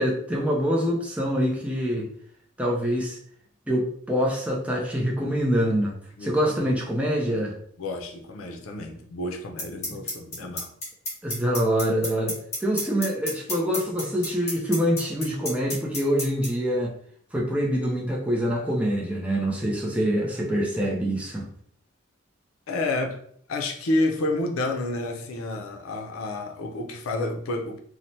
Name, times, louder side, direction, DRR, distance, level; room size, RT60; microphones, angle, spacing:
voice 1, 0.0-2.1 2.6-3.2 3.7-5.9 6.2-7.5 11.2-16.9 17.3-21.5, equal, 5° right, 0.5 m, -25 dB
voice 2, 6.2-6.8 7.8-10.7 22.7-23.2 23.5-27.8, left 2 dB, 85° left, 0.5 m, -29 dB
sound 1, 9.6-16.5, left 1 dB, 30° left, 1.1 m, -29 dB
3.1 x 2.1 x 2.7 m
head